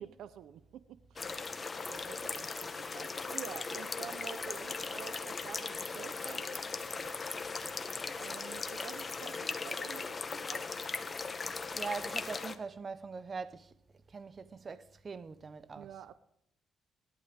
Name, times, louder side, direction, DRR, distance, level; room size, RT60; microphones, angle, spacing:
voice 1, 0.0-1.5 1.9-2.5 2.8-6.6 8.1-10.7 15.7-16.1, right 10 dB, 80° right, 0.7 m, -49 dB
sound 1, 1.2-12.6, left 4 dB, 30° left, 1.3 m, -38 dB
voice 2, 11.7-13.7 14.1-15.9, right 5 dB, 35° right, 0.9 m, -42 dB
26.5 x 11.5 x 3.6 m
cardioid pair, 90°, 0 cm